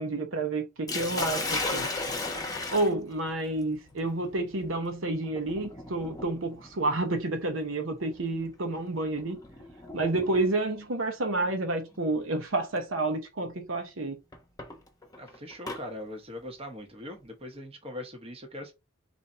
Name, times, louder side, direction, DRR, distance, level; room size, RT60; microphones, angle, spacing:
voice 1, 0.0-1.9 2.7-9.4 9.9-14.2, right 2 dB, 80° right, 0.9 m, -30 dB
Sink (filling or washing), 0.9-10.8 11.9-12.2 12.8-12.9 14.3-15.8, left 2 dB, 20° left, 0.9 m, -37 dB
voice 2, 15.2-18.7, left 1 dB, 30° right, 1.0 m, -41 dB
4.0 x 2.6 x 4.3 m
head